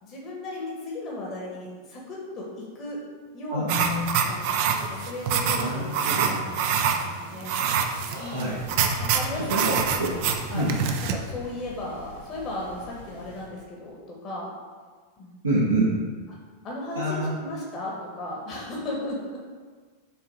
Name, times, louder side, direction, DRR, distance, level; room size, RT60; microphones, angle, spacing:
voice 1, 0.0-3.0 3.3-3.9 4.2-4.4 4.8-7.5 8.2-8.5 9.0-9.9 10.1-10.7 11.0-14.5 15.2-15.3 16.3-16.4 16.6-19.4, left 1 dB, 35° left, -3 dB, 1.4 m, -36 dB
voice 2, 3.5-4.1 5.5-6.4 8.1-8.6 9.3-10.1 10.5-10.7 15.4-15.9 16.9-17.3, right 1 dB, 80° right, -8 dB, 1.3 m, -27 dB
sound 1, 3.7-11.1, right 6 dB, 50° right, 0.6 m, -26 dB
sound 2, 8.5-13.5, left 1 dB, 70° left, 1.6 m, -46 dB
6.5 x 3.7 x 5.0 m, 1.5 s
figure-of-eight pair, 90°, 0 cm